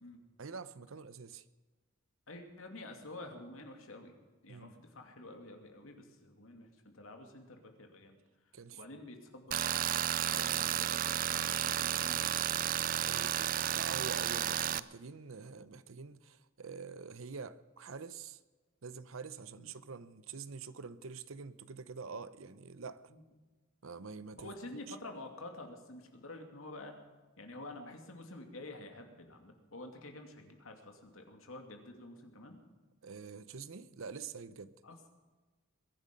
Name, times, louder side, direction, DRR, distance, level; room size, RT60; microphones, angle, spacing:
voice 1, 0.4-1.4 4.5-4.7 8.5-8.8 10.3-10.6 12.5-18.4 18.8-23.1 23.8-24.5 24.9-25.0 33.0-34.8, right 5 dB, 75° right, 0.7 m, -46 dB
voice 2, 2.3-4.2 4.4-8.2 8.7-9.8 10.3-12.3 19.6-19.7 23.1-23.2 24.4-27.0 27.4-32.6 34.8-35.0, left 2 dB, 75° left, 2.5 m, -49 dB
Tools, 9.5-14.8, right 11 dB, 40° right, 0.4 m, -32 dB
22.0 x 10.5 x 5.3 m
head